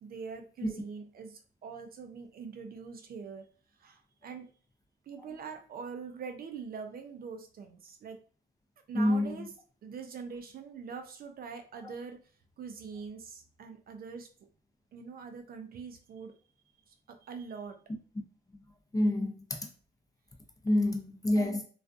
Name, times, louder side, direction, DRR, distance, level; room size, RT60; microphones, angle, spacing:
voice 1, 0.0-3.5 3.8-4.5 5.1-8.2 8.9-9.5 9.8-12.2 12.6-14.3 14.9-16.3 16.9-17.8 21.3-21.6, right 5 dB, 50° right, 0.4 m, -43 dB
voice 2, 8.9-9.3 18.9-19.6 20.6-21.6, left 1 dB, 15° left, 0.5 m, -27 dB
2.3 x 2.3 x 2.5 m
cardioid pair, 90°, 20 cm